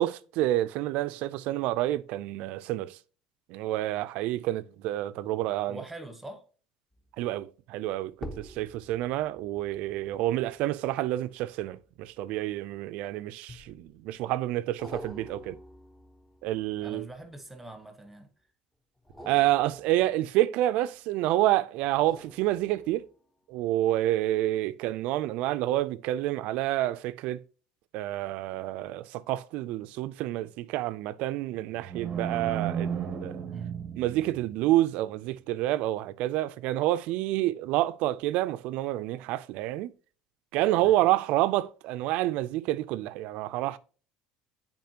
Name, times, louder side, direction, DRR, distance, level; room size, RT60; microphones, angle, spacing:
voice 1, 0.0-3.0 3.5-5.8 7.2-15.6 16.4-17.0 19.3-23.1 23.5-27.4 27.9-33.4 34.0-39.9 40.5-43.8, right 15 dB, 65° right, 0.4 m, -28 dB
voice 2, 5.7-6.4 16.8-18.3 33.5-33.7 40.8-41.0, right 2 dB, 5° right, 1.1 m, -43 dB
sound 1, 6.9-7.3 8.1-12.8 13.5-14.1 14.8-17.8 19.0-21.1 21.8-23.2 23.7-23.8, equal, 10° left, 0.8 m, -48 dB
sound 2, 31.8-34.8, right 8 dB, 35° right, 0.7 m, -34 dB
9.4 x 4.3 x 2.9 m
cardioid pair, 135°, 2 cm